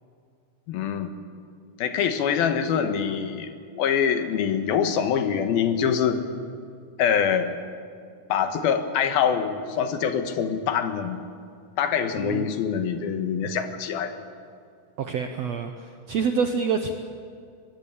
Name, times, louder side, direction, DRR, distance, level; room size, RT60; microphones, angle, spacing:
voice 1, 0.7-1.1 1.8-3.5 3.7-6.2 7.0-7.5 8.3-11.2 11.8-14.2, left 7 dB, 80° left, 7 dB, 3.3 m, -24 dB
voice 2, 15.0-16.9, right 6 dB, 70° right, 6 dB, 1.6 m, -27 dB
23.5 x 20.0 x 8.7 m, 2.3 s
omnidirectional pair, 4.3 m